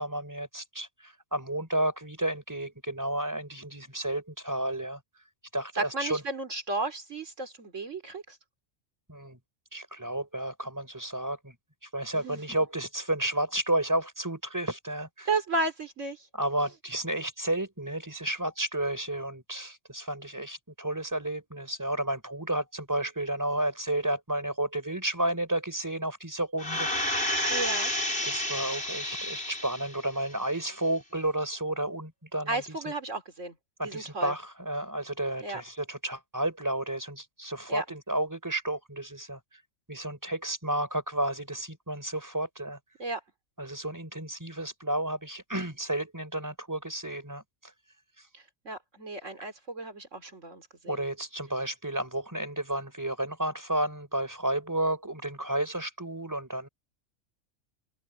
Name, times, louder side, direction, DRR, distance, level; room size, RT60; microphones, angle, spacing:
voice 1, 0.0-5.0 5.5-6.2 9.1-9.4 9.7-11.6 11.8-15.3 16.3-27.2 28.2-32.8 33.8-39.6 39.9-42.8 43.6-47.7 48.2-48.3 50.9-56.7, right 1 dB, 15° right, 4.7 m, -32 dB
voice 2, 5.8-8.4 12.1-12.4 15.3-16.3 27.5-27.9 32.5-33.5 33.8-34.3 35.4-35.6 37.7-37.8 43.0-43.2 48.3-51.0, right 2 dB, 70° right, 3.6 m, -33 dB
sound 1, 26.6-30.0 30.4-30.5, left 1 dB, 50° left, 6.5 m, -30 dB
open air
omnidirectional pair, 1.3 m